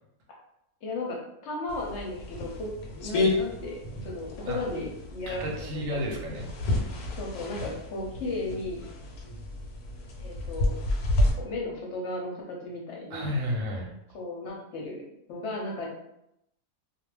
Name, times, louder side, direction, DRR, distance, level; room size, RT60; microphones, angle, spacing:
voice 1, 0.8-2.7 3.0-5.8 7.2-8.8 10.2-10.8 11.4-13.3 14.1-15.0 15.3-15.9, left 2 dB, 60° left, -1 dB, 0.8 m, -35 dB
sound 1, 1.7-11.3, left 2 dB, 90° left, 1.1 m, -31 dB
voice 2, 5.3-6.5 13.1-13.9, equal, 70° right, 0 dB, 0.9 m, -31 dB
2.4 x 2.0 x 3.2 m, 0.80 s
omnidirectional pair, 1.6 m